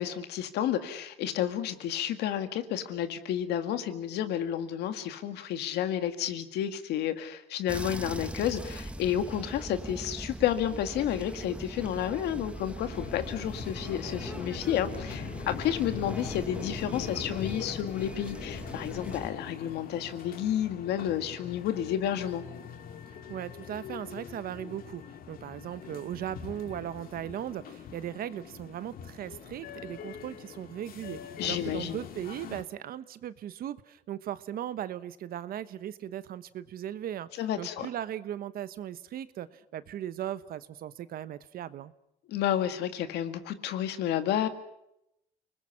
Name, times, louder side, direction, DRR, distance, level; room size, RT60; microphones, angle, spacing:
voice 1, 0.0-22.4 31.4-32.0 37.4-37.9 42.3-44.5, left 10 dB, 80° left, 9 dB, 1.9 m, -31 dB
sound 1, 7.7-19.3, right 1 dB, 5° right, 1.2 m, -41 dB
sound 2, 12.8-32.6, left 7 dB, 60° left, 2.1 m, -42 dB
voice 2, 23.3-37.3 37.6-41.9, right 11 dB, 60° right, 14 dB, 1.1 m, -38 dB
30.0 x 20.5 x 5.9 m, 0.81 s
cardioid pair, 110°, 17 cm